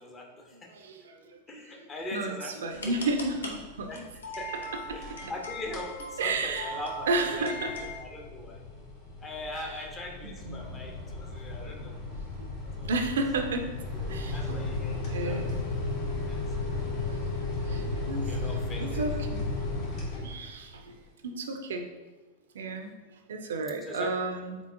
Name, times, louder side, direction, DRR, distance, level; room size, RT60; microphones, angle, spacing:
voice 1, 0.0-0.7 1.5-2.8 3.9-4.0 4.3-4.5 4.9-7.7 8.0-8.6 9.2-12.0 12.6-12.9 14.3-15.4 16.3-16.7 17.7-17.8 18.1-19.0 23.8-24.1, left 2 dB, 20° left, 1 dB, 0.8 m, -41 dB
voice 2, 0.7-1.7 2.1-3.9 5.2-5.3 6.2-6.8 7.1-7.9 9.6-9.7 10.2-10.7 11.6-11.9 12.4-12.5 12.8-13.7 14.0-14.6 15.1-15.7 16.7-19.4 20.2-21.9 22.5-22.9 23.3-24.6, right 3 dB, 65° right, 5 dB, 0.5 m, -33 dB
sound 1, 2.7-8.0, equal, 70° left, 0.7 m, -40 dB
sound 2, 4.8-5.4 5.7-6.0 6.4-20.7, left 2 dB, 50° left, 1.3 m, -34 dB
4.4 x 4.1 x 2.7 m, 1.1 s
figure-of-eight pair, 90°, 0 cm